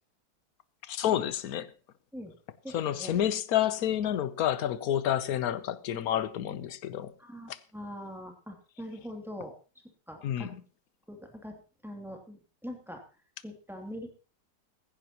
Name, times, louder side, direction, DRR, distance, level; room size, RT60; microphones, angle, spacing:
voice 1, 0.8-1.7 2.7-7.1 7.5-7.6 10.2-10.6, left 11 dB, 60° left, 1.2 m, -29 dB
voice 2, 2.6-3.2 7.2-9.6 10.1-10.5 11.1-11.5 11.8-13.0 13.4-14.1, equal, ahead, 2.4 m, -42 dB
16.0 x 15.5 x 2.9 m
omnidirectional pair, 1.9 m